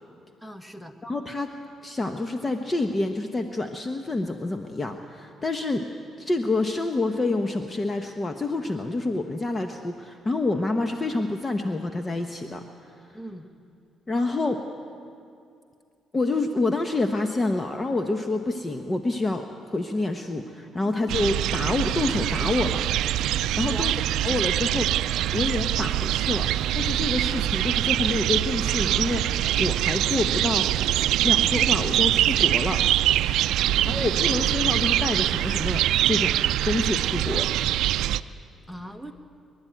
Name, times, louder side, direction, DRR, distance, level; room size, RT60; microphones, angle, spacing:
voice 1, 0.4-1.0 13.1-13.5 20.7-21.1 23.6-24.2 33.6-34.7 38.7-39.1, equal, 5° left, 6 dB, 1.6 m, -41 dB
voice 2, 1.0-1.5 1.8-5.8 6.2-12.7 14.1-14.6 16.1-19.4 19.7-22.8 23.6-23.9 24.2-24.9 25.3-26.5 26.7-30.7 31.2-32.9 33.9-36.4 36.7-37.5, left 2 dB, 25° left, 6 dB, 1.0 m, -27 dB
sound 1, 21.1-38.2, right 13 dB, 85° right, 0.4 m, -24 dB
24.0 x 12.0 x 9.1 m, 2.4 s
cardioid pair, 90°, 0 cm